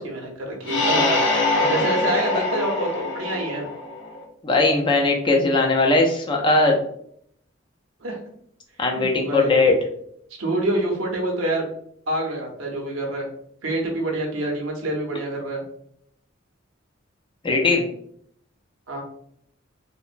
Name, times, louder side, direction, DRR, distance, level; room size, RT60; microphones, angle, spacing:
voice 1, 0.0-3.7 8.0-8.2 8.9-9.6 10.4-11.6 12.1-13.2 13.6-15.6 18.9-19.0, right 1 dB, 80° right, 0 dB, 0.7 m, -27 dB
sound 1, 0.6-4.2, left 2 dB, 65° left, 0.7 m, -23 dB
voice 2, 4.4-6.8 8.8-9.7 17.4-17.8, left 3 dB, 25° left, 1 dB, 0.4 m, -19 dB
2.9 x 2.1 x 2.4 m, 0.68 s
head